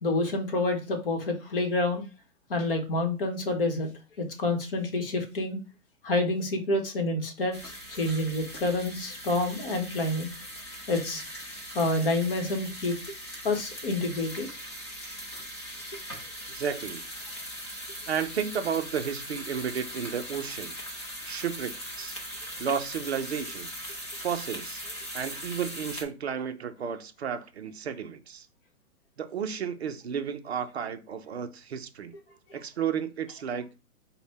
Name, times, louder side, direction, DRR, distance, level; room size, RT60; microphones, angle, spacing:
voice 1, 0.0-2.0 2.5-3.9 4.2-5.6 6.0-7.5 7.9-10.3 10.9-11.2 11.7-12.9 13.4-14.5, left 2 dB, 40° left, 0.9 m, -28 dB
sound 1, 7.5-26.0, equal, 20° left, 0.6 m, -40 dB
voice 2, 16.5-17.0 18.1-20.7 21.2-22.2 22.6-23.7 24.2-24.8 25.1-28.5 29.2-32.1 32.5-33.7, right 7 dB, 50° right, 0.5 m, -32 dB
5.3 x 2.1 x 4.0 m
hypercardioid pair, 170°, 44 cm